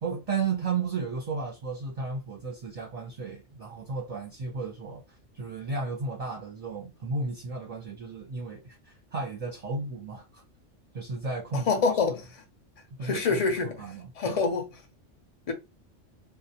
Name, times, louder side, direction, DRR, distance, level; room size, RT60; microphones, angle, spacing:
voice 1, 0.0-10.4 10.9-11.7 13.0-14.4, right 4 dB, 40° right, 0.6 m, -34 dB
voice 2, 11.5-12.2 13.0-13.8 14.2-14.6 15.5-15.6, left 4 dB, 40° left, 0.6 m, -26 dB
2.5 x 2.0 x 2.8 m
omnidirectional pair, 1.2 m